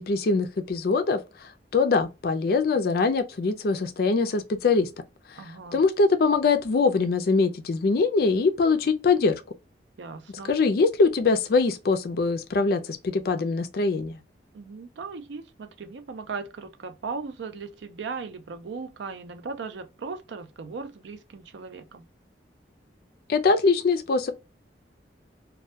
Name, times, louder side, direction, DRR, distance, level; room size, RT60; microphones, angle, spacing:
voice 1, 0.0-4.9 5.7-9.4 10.5-14.2 23.3-24.3, left 4 dB, 55° left, 0.4 m, -23 dB
voice 2, 5.3-5.8 10.0-10.5 14.5-22.0, right 4 dB, 80° right, 0.4 m, -37 dB
2.2 x 2.1 x 2.6 m
head